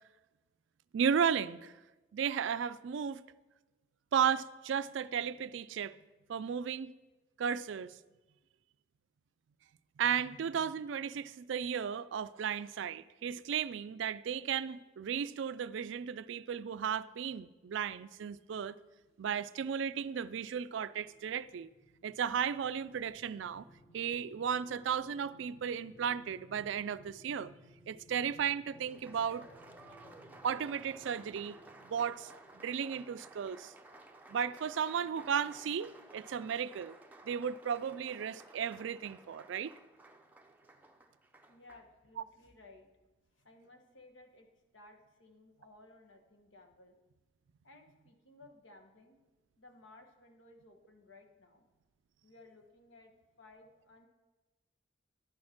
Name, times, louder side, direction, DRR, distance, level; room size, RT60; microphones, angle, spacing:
voice 1, 0.9-1.7 2.1-3.2 4.1-6.0 6.3-6.9 7.4-8.0 10.0-18.8 19.2-21.7 22.0-23.7 23.9-27.5 27.9-29.5 30.4-31.6 31.8-33.7 34.3-37.0 37.2-39.7, right 7 dB, 70° right, 0.3 m, -34 dB
sound 1, 18.9-35.2, right 2 dB, 55° left, 2.1 m, -70 dB
sound 2, 20.9-33.6 34.0-34.2, equal, 30° left, 1.1 m, -62 dB
Applause, 28.7-41.9, right 2 dB, 10° right, 0.5 m, -56 dB
voice 2, 41.5-42.9 43.3-44.5 44.7-47.0 47.6-49.2 49.6-51.7 52.2-54.1, left 2 dB, 75° left, 1.3 m, -58 dB
11.0 x 6.4 x 6.0 m
head